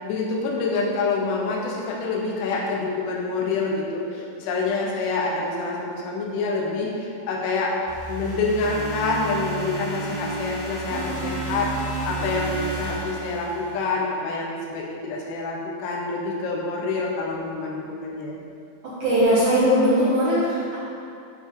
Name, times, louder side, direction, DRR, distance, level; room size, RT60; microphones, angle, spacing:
voice 1, 0.0-7.7 8.1-18.4, left 3 dB, 85° left, -3 dB, 3.5 m, -27 dB
sound 1, 7.9-14.0, right 2 dB, 65° left, 2.1 m, -32 dB
voice 2, 18.8-20.8, equal, 70° right, -9 dB, 1.8 m, -20 dB
11.5 x 5.3 x 3.8 m, 2.5 s
omnidirectional pair, 5.3 m